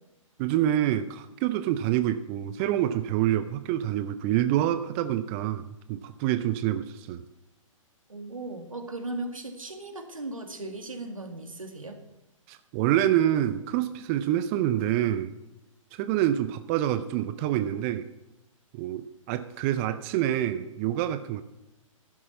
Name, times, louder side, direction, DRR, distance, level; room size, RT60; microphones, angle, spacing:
voice 1, 0.4-7.2 12.5-15.3 15.9-18.0 18.7-21.4, right 12 dB, 25° right, 12 dB, 0.4 m, -27 dB
voice 2, 8.1-12.0, right 2 dB, 80° right, 5 dB, 2.1 m, -37 dB
12.5 x 11.0 x 4.3 m, 0.95 s
figure-of-eight pair, 120°, 17 cm